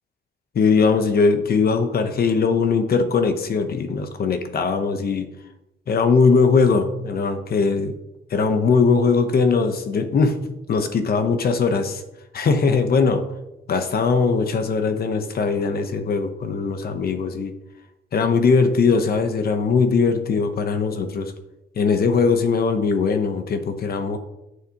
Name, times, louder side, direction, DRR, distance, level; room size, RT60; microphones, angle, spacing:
voice 1, 0.5-5.3 5.9-7.9 8.3-10.4 10.7-12.0 12.3-13.2 13.7-17.5 18.1-21.3 21.8-24.2, left 5 dB, 50° left, 8 dB, 0.9 m, -20 dB
11.0 x 6.4 x 2.9 m, 0.92 s
wide cardioid pair, 150°, 20 cm